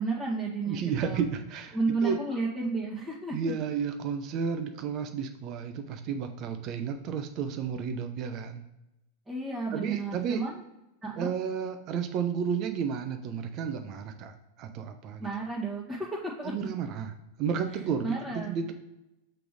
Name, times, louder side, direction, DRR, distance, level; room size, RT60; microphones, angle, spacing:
voice 1, 0.0-1.2 1.7-3.5 9.3-10.5 11.0-11.3 15.2-16.5 18.0-18.6, right 3 dB, 10° right, -8 dB, 1.7 m, -32 dB
voice 2, 0.7-2.2 3.3-8.6 9.7-10.4 11.2-15.3 16.4-17.1 17.4-18.7, right 6 dB, 45° right, 7 dB, 0.7 m, -32 dB
5.9 x 3.3 x 5.0 m, 0.94 s
hypercardioid pair, 125°, 0 cm